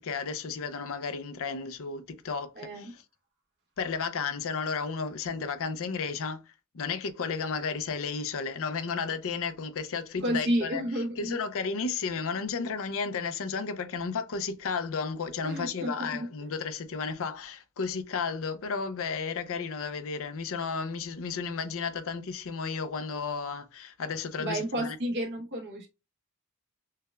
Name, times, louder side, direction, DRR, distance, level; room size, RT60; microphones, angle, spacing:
voice 1, 0.0-3.0 3.8-6.4 6.7-25.0, left 5 dB, 65° left, 0.5 m, -33 dB
voice 2, 2.6-2.9 10.2-11.3 15.4-16.3 24.4-25.9, equal, 50° right, 1.0 m, -31 dB
6.5 x 2.3 x 2.2 m
head